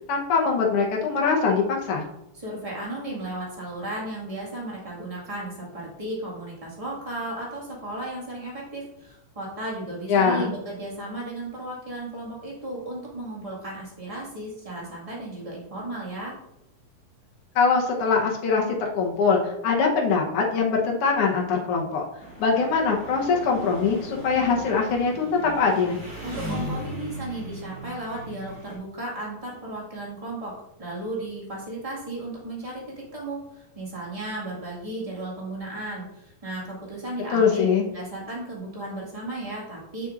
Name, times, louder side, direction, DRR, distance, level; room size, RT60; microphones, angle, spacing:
voice 1, 0.1-2.0 10.1-10.5 17.5-22.0 22.4-26.0 37.3-37.8, left 5 dB, 75° left, -1 dB, 1.3 m, -22 dB
voice 2, 2.3-16.3 26.2-30.5 30.8-32.8 33.1-37.6 37.9-40.1, right 1 dB, 20° right, -4 dB, 0.8 m, -34 dB
Engine, 22.2-28.8, equal, 50° right, 3.1 m, -38 dB
8.2 x 6.7 x 2.5 m, 0.81 s
omnidirectional pair, 4.0 m